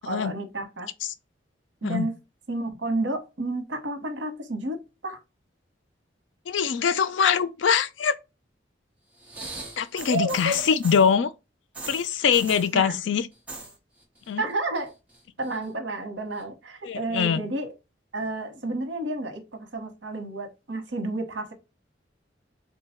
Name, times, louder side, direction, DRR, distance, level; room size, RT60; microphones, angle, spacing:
voice 1, 0.1-0.9 1.8-2.1 2.5-5.2 10.1-10.6 12.7-13.0 14.4-14.9 15.4-17.7 18.1-21.5, right 2 dB, 75° right, 1.0 m, -31 dB
voice 2, 6.5-8.2 9.8-11.3 11.9-13.3 14.3-14.4 16.8-17.4, left 7 dB, 80° left, 0.4 m, -23 dB
sound 1, 9.2-11.1 11.7-12.7 13.3-13.7 14.0-14.5 14.9-15.6 16.4-16.5, right 3 dB, 5° right, 0.9 m, -40 dB
3.7 x 2.2 x 4.3 m
head